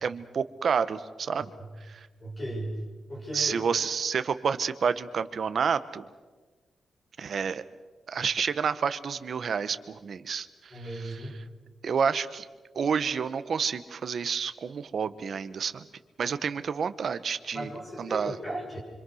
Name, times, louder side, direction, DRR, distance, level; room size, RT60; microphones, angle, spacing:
voice 1, 0.0-1.5 1.9-2.1 3.3-6.0 7.2-7.6 8.1-11.2 11.8-12.5 12.7-15.8 16.2-17.7 18.0-18.4, right 6 dB, 50° right, 12 dB, 0.9 m, -29 dB
voice 2, 1.3-1.7 2.2-2.8 3.1-3.6 10.7-11.3 17.5-18.8, right 1 dB, 20° left, -1 dB, 6.7 m, -36 dB
26.0 x 25.5 x 6.4 m, 1.4 s
wide cardioid pair, 175°, 0 cm